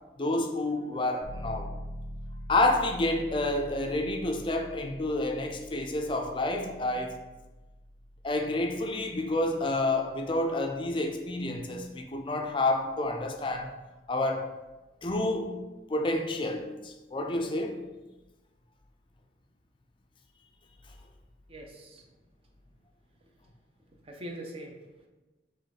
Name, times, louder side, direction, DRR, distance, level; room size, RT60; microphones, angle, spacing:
voice 1, 0.2-1.7 2.5-7.2 8.2-13.8 14.1-14.5 15.0-15.6 15.9-17.8, left 2 dB, 25° left, 3 dB, 0.4 m, -29 dB
sound 1, 1.2-11.8, equal, 60° right, 1.1 m, -45 dB
voice 2, 21.5-22.1 23.3-23.4 24.0-25.1, right 1 dB, 30° right, 1 dB, 0.5 m, -43 dB
3.7 x 3.1 x 4.0 m, 1.1 s
head